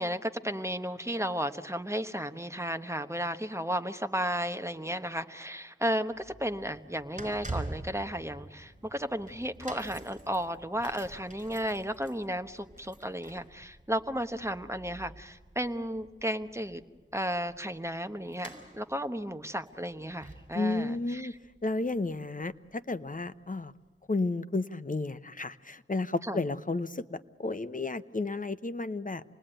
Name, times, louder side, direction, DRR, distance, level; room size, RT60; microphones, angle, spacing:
voice 1, 0.0-16.8 17.1-21.3 26.2-26.4, equal, 15° right, 9 dB, 1.1 m, -34 dB
sound 1, 6.1-22.4 22.7-22.9 23.7-23.8, right 2 dB, 35° right, 4.5 m, -47 dB
voice 2, 20.5-21.3 21.6-23.7 24.1-29.2, left 3 dB, 40° left, 12 dB, 0.9 m, -32 dB
27.0 x 20.0 x 9.0 m, 1.2 s
wide cardioid pair, 55°, 20 cm